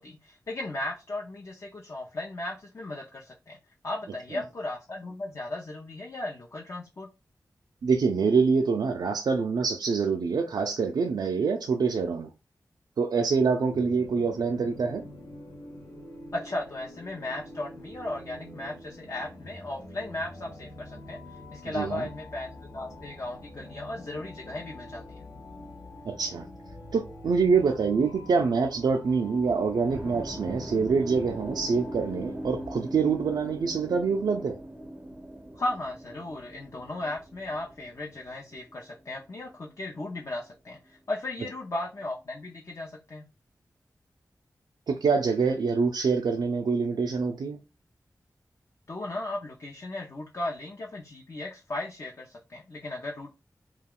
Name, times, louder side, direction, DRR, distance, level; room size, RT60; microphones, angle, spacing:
voice 1, 0.0-3.6 3.8-7.1 16.3-25.3 35.5-43.3 48.9-53.4, left 2 dB, 50° left, 0.5 m, -36 dB
voice 2, 7.8-12.3 13.0-15.1 21.7-22.0 26.1-26.5 26.9-34.6 44.9-47.6, right 5 dB, 85° right, 0.3 m, -25 dB
sound 1, 13.7-32.7, left 1 dB, 75° left, 0.8 m, -45 dB
sound 2, 29.9-40.0, right 1 dB, 20° right, 0.4 m, -41 dB
2.3 x 2.2 x 3.5 m
wide cardioid pair, 65°, 7 cm